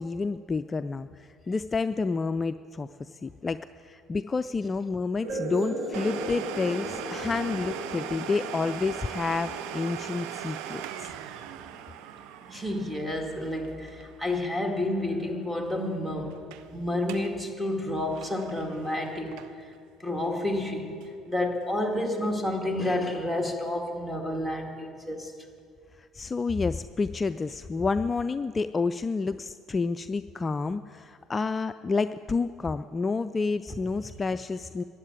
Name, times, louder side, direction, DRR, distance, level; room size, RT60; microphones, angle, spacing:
voice 1, 0.0-11.1 26.0-34.8, left 4 dB, 30° left, 0.3 m, -29 dB
sound 1, 5.2-12.4, right 1 dB, 90° right, 4.0 m, -38 dB
sound 2, 5.3-8.8, right 4 dB, 45° right, 1.1 m, -43 dB
Domestic sounds home sounds, 5.9-15.4 15.6-15.7 16.3-16.7 17.0-17.4 17.7-19.8 20.2-20.3 21.0-21.1, right 10 dB, 70° right, 0.6 m, -40 dB
voice 2, 12.5-19.7 20.0-21.0 21.3-25.4, left 1 dB, 10° right, 2.2 m, -30 dB
13.0 x 8.1 x 9.6 m
hypercardioid pair, 65°, 0 cm